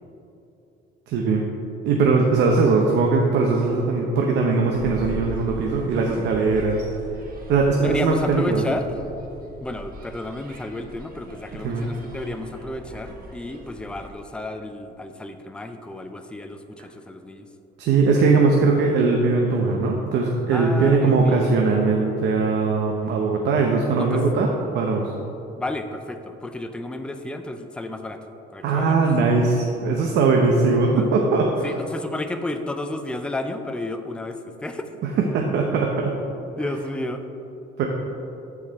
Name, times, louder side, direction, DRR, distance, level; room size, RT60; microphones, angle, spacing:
voice 1, 1.1-1.4 1.8-6.8 7.5-8.6 11.6-11.9 17.8-25.1 28.6-31.7 35.0-36.2 37.8-37.9, right 4 dB, 70° right, 0 dB, 0.8 m, -20 dB
sound 1, 4.7-14.1, right 1 dB, 50° right, 1.4 m, -40 dB
voice 2, 5.9-6.3 7.8-8.9 9.6-17.5 20.5-21.5 24.0-24.2 25.6-28.2 28.5-29.0 31.0-31.1 31.6-34.9 36.6-37.3, left 2 dB, 5° left, 7 dB, 0.4 m, -32 dB
14.0 x 4.8 x 3.5 m, 2.9 s
cardioid pair, 130°, 19 cm